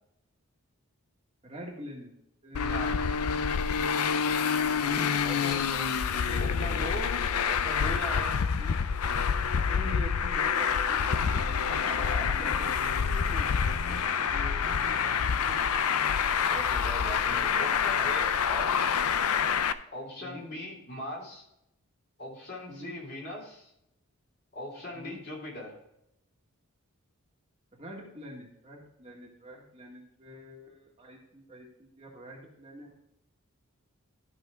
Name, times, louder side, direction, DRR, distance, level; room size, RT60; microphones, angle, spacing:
voice 1, 1.4-2.1 2.4-4.2 4.4-6.8 8.6-8.8 9.7-11.9 12.2-15.7 18.7-18.8 20.2-20.4 22.7-22.9 24.9-25.2 27.7-32.9, equal, 25° right, -1 dB, 1.7 m, -46 dB
Traffic noise roadway noise, 2.5-19.7, left 6 dB, 80° left, 0.5 m, -27 dB
voice 2, 2.6-2.9 5.2-5.6 6.4-7.1 7.4-8.4 11.7-12.7 16.5-18.7 19.9-21.4 22.2-23.7 24.5-25.8, left 1 dB, 45° left, -2 dB, 3.1 m, -39 dB
12.5 x 5.8 x 3.7 m, 0.81 s
head